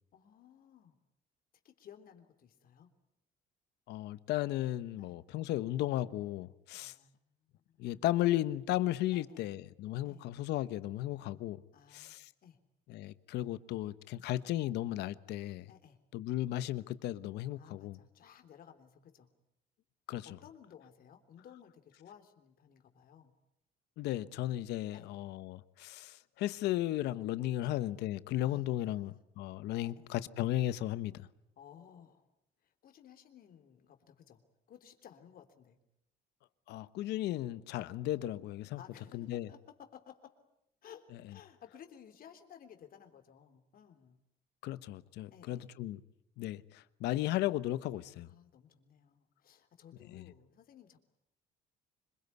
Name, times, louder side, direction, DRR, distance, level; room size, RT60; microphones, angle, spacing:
voice 1, 0.1-0.9 1.6-2.9 5.0-5.2 6.7-7.3 7.5-8.0 9.1-9.6 10.0-10.3 11.7-12.6 15.7-16.0 17.6-19.3 20.2-23.3 24.9-25.2 27.6-27.8 28.5-29.2 29.8-30.1 31.6-32.3 32.6-34.4 34.7-35.8 38.8-40.3 40.8-44.2 45.3-45.7 48.3-51.0, left 8 dB, 60° left, 3.4 m, -57 dB
voice 2, 3.9-6.9 7.8-11.6 11.9-12.3 12.9-15.7 16.1-18.0 20.1-20.3 24.0-31.3 36.7-38.8 39.1-39.5 44.6-46.0 46.4-48.3 50.1-50.3, left 14 dB, 80° left, 1.2 m, -35 dB
25.5 x 22.5 x 9.5 m
cardioid pair, 110°, 17 cm